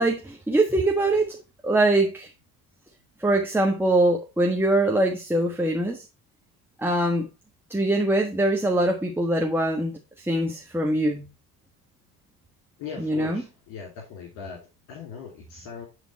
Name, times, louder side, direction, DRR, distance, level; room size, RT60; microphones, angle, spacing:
voice 1, 0.0-1.4 1.6-2.3 3.2-6.0 6.8-7.3 7.7-11.3 13.0-13.4, right 1 dB, 5° right, 1.4 m, -23 dB
voice 2, 12.8-15.9, left 6 dB, 65° left, 3.0 m, -39 dB
10.5 x 4.0 x 4.3 m
hypercardioid pair, 55°, 48 cm